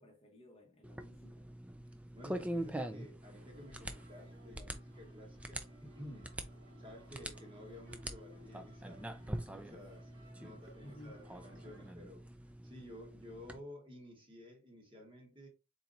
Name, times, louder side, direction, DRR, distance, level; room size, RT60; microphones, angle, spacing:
voice 1, 0.0-1.5 10.4-10.5 10.8-11.2, left 1 dB, 25° left, 0.9 m, -56 dB
sound 1, 0.8-13.6, right 1 dB, 5° right, 0.3 m, -45 dB
voice 2, 2.1-6.4 6.8-9.1 9.4-10.1 10.4-12.3 12.6-15.5, left 1 dB, 25° right, 1.2 m, -53 dB
sound 2, 3.3-11.9, equal, 65° right, 2.5 m, -62 dB
4.3 x 4.0 x 2.5 m
head